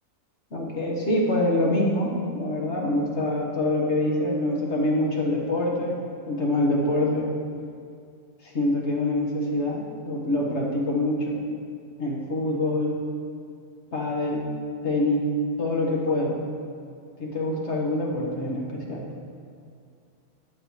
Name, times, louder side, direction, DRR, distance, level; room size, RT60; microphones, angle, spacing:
voice 1, 0.5-6.0 6.3-7.3 8.4-11.4 12.0-13.0 13.9-14.5 14.8-15.3 15.6-16.4 17.2-19.0, left 1 dB, 55° left, -2 dB, 1.8 m, -25 dB
13.5 x 8.7 x 3.2 m, 2.3 s
omnidirectional pair, 1.4 m